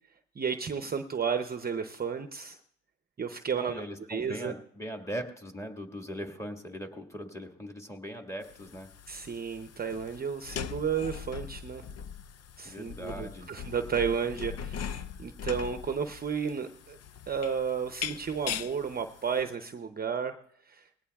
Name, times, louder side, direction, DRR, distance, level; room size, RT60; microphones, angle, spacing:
voice 1, 0.4-2.6 3.2-3.8 4.1-4.5 9.1-11.8 12.6-17.0 17.3-20.4 20.7-20.9, right 6 dB, 30° right, 7 dB, 0.7 m, -32 dB
voice 2, 3.5-8.9 12.6-13.5, equal, 10° left, 3 dB, 1.7 m, -40 dB
sound 1, 8.4-19.4, left 8 dB, 55° left, 0.6 m, -41 dB
20.0 x 17.0 x 2.3 m, 0.68 s
cardioid pair, 90°, 30 cm